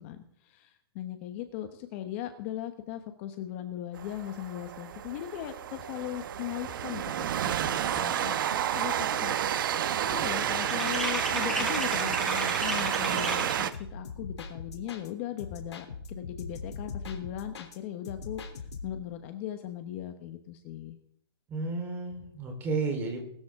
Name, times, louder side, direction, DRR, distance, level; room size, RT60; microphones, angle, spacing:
voice 1, 0.0-9.4 10.1-21.0, left 12 dB, 30° left, 8 dB, 1.1 m, -38 dB
Train, 4.0-13.7, right 10 dB, 50° right, 1.0 m, -30 dB
sound 1, 8.5-8.9 9.1-13.8, left 1 dB, ahead, 1.6 m, -36 dB
sound 2, 13.7-15.1 15.4-17.8 18.0-19.1, left 4 dB, 80° left, 3.4 m, -41 dB
voice 2, 21.5-23.2, right 3 dB, 15° right, 3 dB, 3.8 m, -32 dB
21.0 x 13.5 x 3.7 m, 0.69 s
hypercardioid pair, 165°, 14 cm